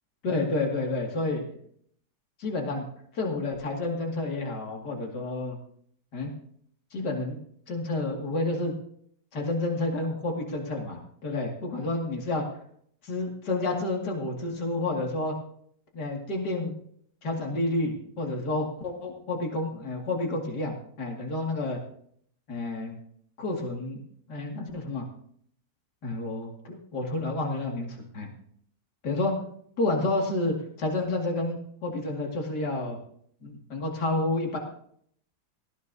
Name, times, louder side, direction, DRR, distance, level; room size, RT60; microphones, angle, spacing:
voice 1, 0.2-1.5 2.4-2.8 3.1-5.6 6.1-6.3 6.9-7.4 7.7-8.7 9.3-12.4 13.0-15.4 15.9-16.7 17.2-21.8 22.5-22.9 23.4-24.0 24.3-25.1 26.0-28.3 29.0-29.3 29.8-33.0 33.4-34.6, left 2 dB, 65° left, 0 dB, 2.9 m, -30 dB
18.0 x 15.0 x 2.8 m, 0.64 s
omnidirectional pair, 1.9 m